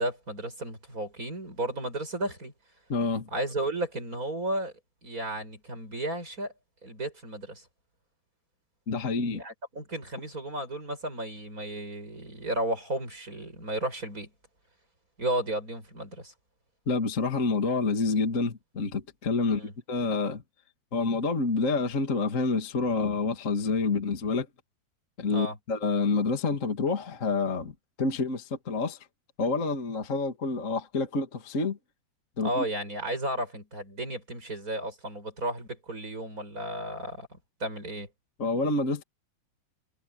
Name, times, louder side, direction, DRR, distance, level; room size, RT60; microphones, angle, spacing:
voice 1, 0.0-2.5 3.3-4.7 5.0-6.5 6.8-7.7 9.3-14.3 15.2-16.3 19.4-19.7 25.3-25.6 32.4-37.3 37.6-38.1, right 1 dB, 20° right, 8.1 m, -33 dB
voice 2, 2.9-3.3 8.9-9.4 16.9-20.4 20.9-24.5 25.2-27.7 28.0-29.0 29.4-31.8 32.4-32.6 38.4-39.0, left 3 dB, 25° left, 1.9 m, -28 dB
omnidirectional pair, 4.5 m